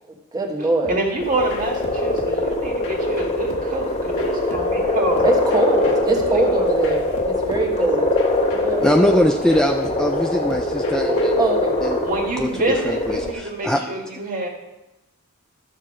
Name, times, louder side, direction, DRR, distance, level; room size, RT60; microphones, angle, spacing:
voice 1, 0.3-1.0 5.2-8.1 8.5-8.9 11.4-11.7, right 2 dB, 20° right, 0 dB, 1.3 m, -22 dB
sound 1, 0.8-11.5, left 2 dB, 70° left, 1.5 m, -42 dB
voice 2, 0.9-5.3 5.8-5.9 6.2-6.8 11.0-11.2 12.0-14.5, right 2 dB, 40° right, 0 dB, 1.9 m, -26 dB
sound 2, 1.2-13.3, left 1 dB, 30° left, 1.6 m, -22 dB
voice 3, 8.8-11.4 11.8-12.0 12.4-12.5 12.8-13.9, left 1 dB, 5° left, 4 dB, 0.3 m, -21 dB
12.0 x 6.7 x 4.8 m, 0.99 s
head